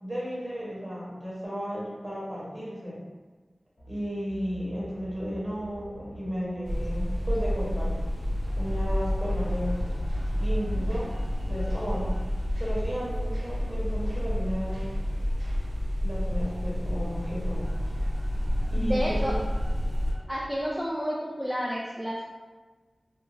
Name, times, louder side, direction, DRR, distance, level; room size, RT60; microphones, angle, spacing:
voice 1, 0.0-3.0 3.9-8.0 8.6-10.0 10.4-11.1 11.5-12.1 12.6-14.9 16.0-17.7 18.7-19.4, equal, 30° right, -7 dB, 1.2 m, -34 dB
sound 1, 3.8-20.8, equal, 50° left, 0.6 m, -48 dB
sound 2, 6.6-20.1, equal, 70° right, 0.5 m, -29 dB
voice 2, 18.7-19.3 20.3-22.2, equal, 5° right, -5 dB, 0.4 m, -30 dB
2.7 x 2.1 x 3.1 m, 1.3 s
cardioid pair, 40°, 0 cm